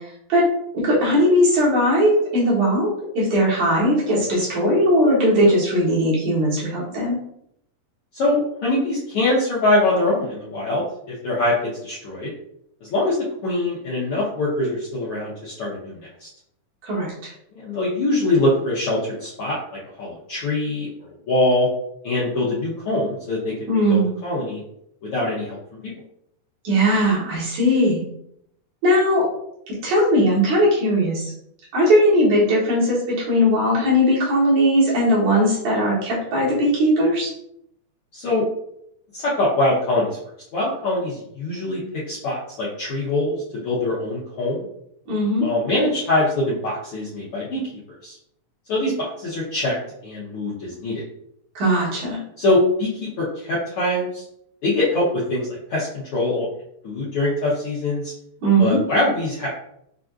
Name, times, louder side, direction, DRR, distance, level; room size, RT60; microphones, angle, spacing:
voice 1, 0.7-2.9 3.1-7.2 16.8-17.3 23.7-24.2 26.6-28.0 28.8-29.3 29.8-31.3 31.7-37.3 45.1-45.5 51.5-52.2 58.4-58.8, equal, 75° right, -7 dB, 2.8 m, -19 dB
voice 2, 8.1-11.6 11.8-12.3 12.8-13.2 13.4-16.3 17.5-19.6 20.0-21.7 22.0-24.6 25.1-25.6 25.8-25.9 38.1-38.4 39.1-40.2 40.5-41.8 42.1-44.6 45.4-47.6 48.0-48.2 48.7-49.8 50.0-51.0 52.4-54.2 54.6-56.5 56.8-58.1 58.6-59.5, left 2 dB, 70° left, -7 dB, 1.3 m, -23 dB
6.0 x 2.5 x 2.4 m, 0.75 s
omnidirectional pair, 3.5 m